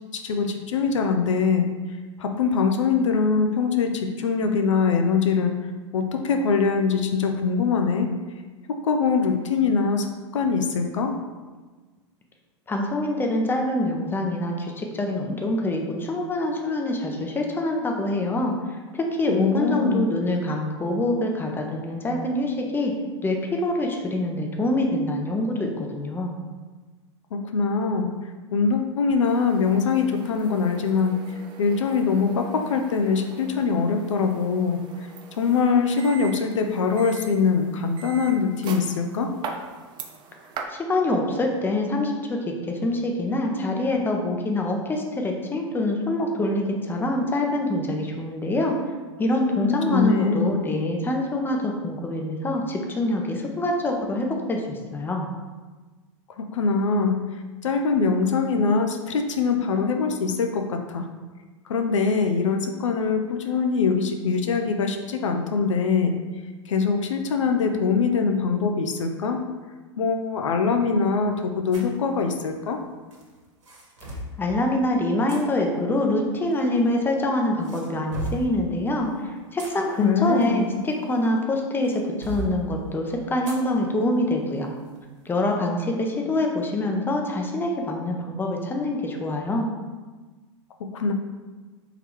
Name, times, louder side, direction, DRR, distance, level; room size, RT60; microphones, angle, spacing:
voice 1, 0.1-1.7 2.2-5.5 5.9-8.1 8.8-11.1 19.3-20.1 27.3-28.1 28.5-34.8 35.4-39.3 49.5-50.6 56.4-57.2 57.6-61.0 61.7-66.1 66.7-69.4 70.0-72.8 80.0-80.6 90.8-91.1, left 5 dB, 75° left, 4 dB, 0.5 m, -23 dB
voice 2, 12.7-22.9 23.2-26.3 40.7-48.7 49.2-55.3 74.4-84.7 85.3-89.7, left 1 dB, 15° left, 2 dB, 0.7 m, -25 dB
sound 1, 29.2-40.7, right 5 dB, 30° right, 0.5 m, -41 dB
sound 2, 71.7-72.0 73.1-74.4 75.3-75.4 76.6-77.2 77.6-78.5 79.3-81.4 81.8-82.5 83.5-83.7 84.1-84.2 84.8-85.0, right 2 dB, 70° right, 1.3 m, -36 dB
3.9 x 2.8 x 4.6 m, 1.3 s
hypercardioid pair, 100°, 16 cm